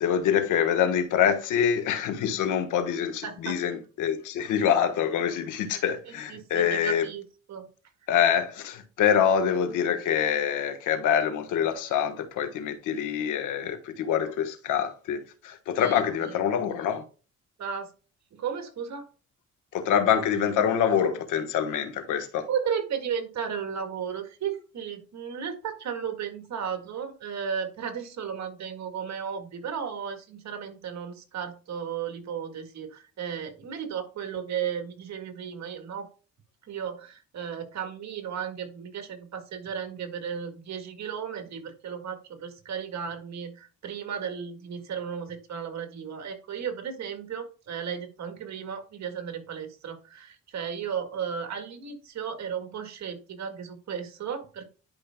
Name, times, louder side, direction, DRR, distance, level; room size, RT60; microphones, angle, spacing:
voice 1, 0.0-7.0 8.1-17.0 19.7-22.5, left 8 dB, 90° left, 1.3 m, -25 dB
voice 2, 3.2-3.6 6.1-7.7 15.8-16.4 17.6-17.9 18.3-19.1 22.5-36.1 36.7-54.7, right 7 dB, 65° right, 1.9 m, -34 dB
11.0 x 5.3 x 2.3 m
cardioid pair, 90°, 30 cm